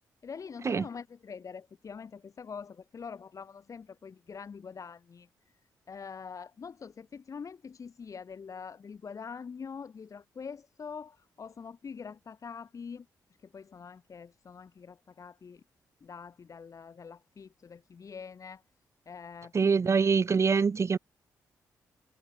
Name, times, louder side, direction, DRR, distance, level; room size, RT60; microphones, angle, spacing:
voice 1, 0.2-5.3 5.9-13.1 13.4-15.6 16.0-18.6 19.1-19.8, left 6 dB, 50° left, 5.9 m, -44 dB
voice 2, 19.5-21.0, right 5 dB, 45° right, 1.0 m, -24 dB
supercardioid pair, 60°, 7 cm